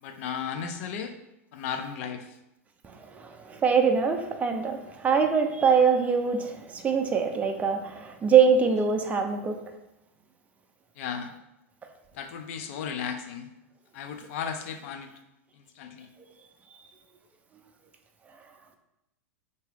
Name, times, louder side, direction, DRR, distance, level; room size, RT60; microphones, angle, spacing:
voice 1, 0.0-1.1 1.5-2.4 6.1-6.3 11.0-11.3 12.1-13.5 13.9-15.1 15.5-16.1, left 7 dB, 60° left, 7 dB, 0.5 m, -35 dB
voice 2, 2.8-9.6, right 6 dB, 20° right, 5 dB, 0.4 m, -23 dB
3.6 x 2.7 x 3.3 m, 0.89 s
hypercardioid pair, 110°, 8 cm